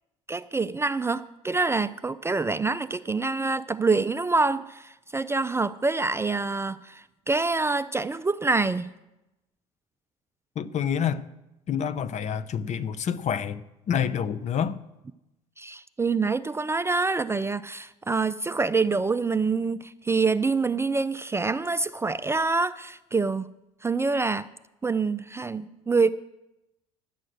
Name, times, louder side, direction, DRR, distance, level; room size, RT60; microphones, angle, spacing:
voice 1, 0.3-8.9 15.6-23.5 23.8-24.5 24.8-26.1, right 4 dB, 15° right, 0.4 m, -26 dB
voice 2, 10.6-11.3 11.7-14.8, left 8 dB, 45° left, 0.7 m, -28 dB
11.5 x 7.7 x 6.3 m
hypercardioid pair, 70°, 17 cm